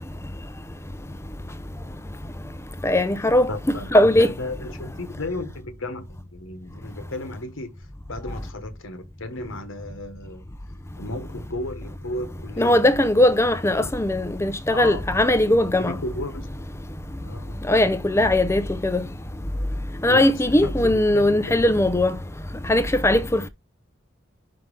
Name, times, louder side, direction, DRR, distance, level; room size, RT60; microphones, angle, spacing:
voice 1, 2.8-4.3 12.6-16.0 17.7-19.1 20.0-22.2 22.6-23.5, left 1 dB, 15° left, 0.6 m, -19 dB
voice 2, 3.5-6.1 6.3-7.7 8.1-10.4 11.0-12.8 13.8-13.9 14.7-15.1 15.8-16.4 17.2-17.9 20.1-20.4 20.6-21.7, left 2 dB, 80° left, 1.1 m, -34 dB
5.8 x 3.4 x 5.3 m
head